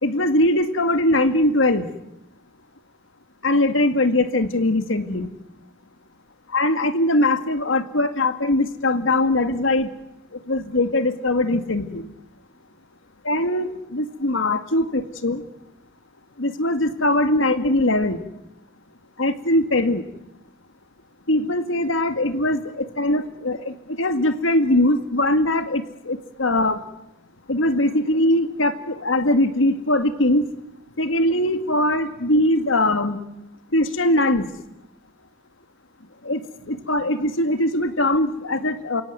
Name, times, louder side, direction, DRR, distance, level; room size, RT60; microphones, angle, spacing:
voice 1, 0.0-1.9 3.4-5.3 6.5-9.9 10.5-12.1 13.2-15.4 16.4-18.2 19.2-20.0 21.3-26.8 27.5-30.4 31.0-33.2 33.7-34.5 36.2-36.4 36.7-39.0, left 1 dB, 80° left, 9 dB, 2.0 m, -21 dB
29.0 x 17.0 x 9.5 m, 0.87 s
head